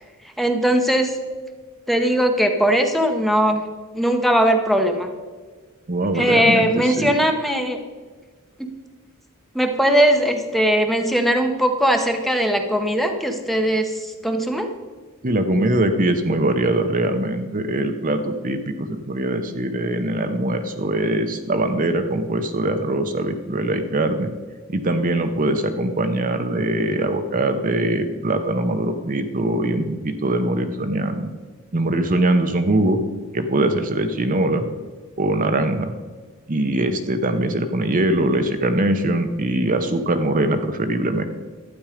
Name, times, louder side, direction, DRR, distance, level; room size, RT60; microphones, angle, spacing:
voice 1, 0.4-1.1 1.9-3.6 3.9-5.1 6.1-7.8 8.6-8.7 9.5-14.7, equal, ahead, 4 dB, 0.8 m, -19 dB
voice 2, 5.9-7.1 15.2-24.3 24.7-31.3 31.7-33.0 33.3-34.7 35.2-35.9 36.5-41.2, right 1 dB, 40° right, 7 dB, 0.8 m, -22 dB
12.0 x 8.9 x 5.0 m, 1.4 s
head